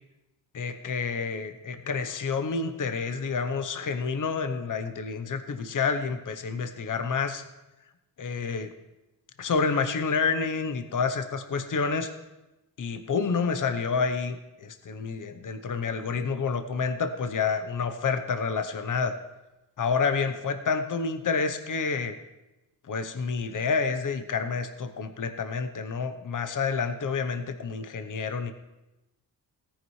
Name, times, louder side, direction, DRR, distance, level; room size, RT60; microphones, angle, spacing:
voice 1, 0.5-7.4 8.2-8.7 9.4-12.1 12.8-19.1 19.8-22.1 22.9-28.5, left 5 dB, 45° left, 8 dB, 0.9 m, -29 dB
17.0 x 10.0 x 3.2 m, 1.0 s
cardioid pair, 85°, 42 cm